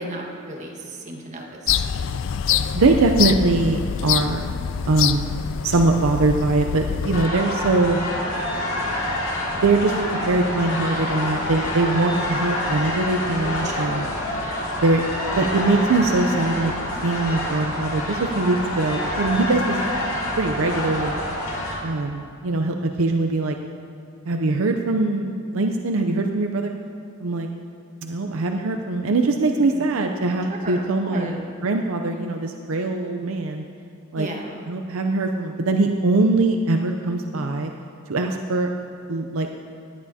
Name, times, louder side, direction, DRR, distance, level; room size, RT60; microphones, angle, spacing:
voice 1, 0.0-1.8 13.6-14.5 29.5-29.9 30.5-31.3 34.1-34.7, right 1 dB, 35° right, -1 dB, 1.5 m, -35 dB
sound 1, 1.7-7.3, left 8 dB, 60° left, 0.3 m, -25 dB
voice 2, 2.7-4.4 4.9-5.4 5.6-8.0 9.6-14.1 14.8-15.0 15.4-16.7 17.0-19.8 20.4-21.2 21.8-23.6 24.3-26.7 27.2-27.5 28.0-31.4 31.6-33.6 34.1-34.3 34.7-37.7 38.1-38.7 39.1-39.5, right 3 dB, 70° right, 4 dB, 0.6 m, -22 dB
sound 2, 7.1-21.8, left 1 dB, 80° left, 2.3 m, -27 dB
18.0 x 11.0 x 2.8 m, 2.7 s
head